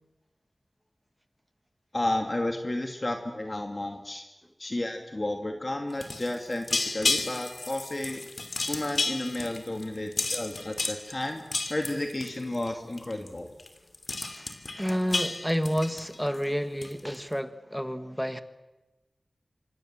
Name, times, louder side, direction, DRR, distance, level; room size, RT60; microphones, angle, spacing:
voice 1, 1.9-4.2 4.6-8.3 8.7-11.4 11.7-13.5, left 1 dB, 35° left, 4 dB, 2.4 m, -32 dB
sound 1, 5.9-12.7 13.0-13.3 13.6-13.7 13.9-16.4 16.8-17.1, left 3 dB, 65° left, 2.9 m, -32 dB
voice 2, 14.3-18.4, equal, ahead, 10 dB, 1.6 m, -30 dB
26.0 x 25.5 x 7.6 m, 1.1 s
wide cardioid pair, 70°, 0 cm